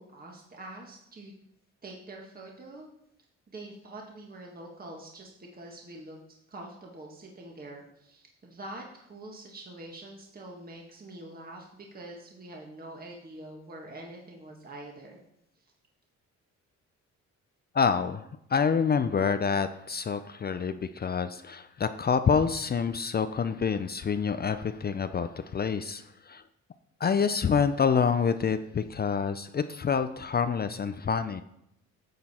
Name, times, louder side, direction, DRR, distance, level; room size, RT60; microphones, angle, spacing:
voice 1, 0.0-1.3 1.8-2.9 3.5-15.2, right 1 dB, 30° right, 0 dB, 1.6 m, -45 dB
voice 2, 17.7-26.4 27.0-31.4, left 6 dB, 30° left, 10 dB, 0.5 m, -27 dB
10.0 x 6.8 x 4.3 m, 0.76 s
cardioid pair, 90°, 30 cm